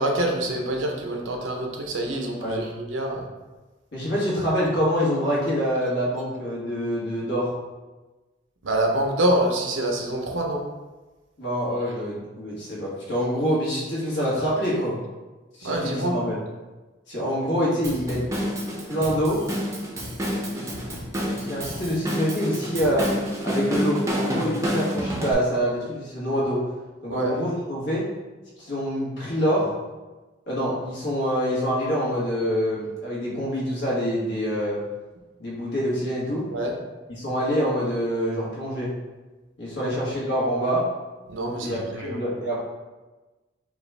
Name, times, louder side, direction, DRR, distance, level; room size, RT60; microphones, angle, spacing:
voice 1, 0.0-3.2 8.6-10.6 15.6-16.2 27.1-27.3 36.5-36.7 39.8-40.1 41.3-42.2, right 1 dB, 85° right, 1 dB, 0.7 m, -26 dB
voice 2, 3.9-7.5 11.4-14.9 15.5-16.4 17.1-18.3 18.9-19.4 20.5-20.6 21.3-23.1 23.4-26.6 27.0-28.0 28.6-29.7 30.5-34.8 35.4-36.5 37.1-38.9 39.6-40.8 41.6-42.6, equal, 65° left, -6 dB, 1.4 m, -26 dB
Drum kit / Drum, 17.8-25.3, equal, 15° right, 0.6 m, -29 dB
4.9 x 2.4 x 3.3 m, 1.2 s
head